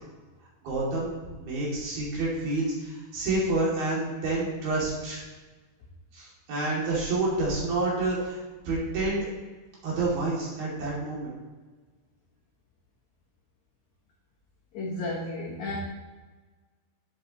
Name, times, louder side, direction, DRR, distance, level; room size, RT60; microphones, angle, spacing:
voice 1, 0.6-1.1 1.4-5.2 6.1-9.3 9.8-11.3, right 2 dB, 60° right, -6 dB, 4.4 m, -28 dB
voice 2, 14.7-15.8, left 2 dB, 85° left, -3 dB, 1.6 m, -33 dB
11.0 x 8.4 x 3.1 m, 1.3 s
omnidirectional pair, 5.1 m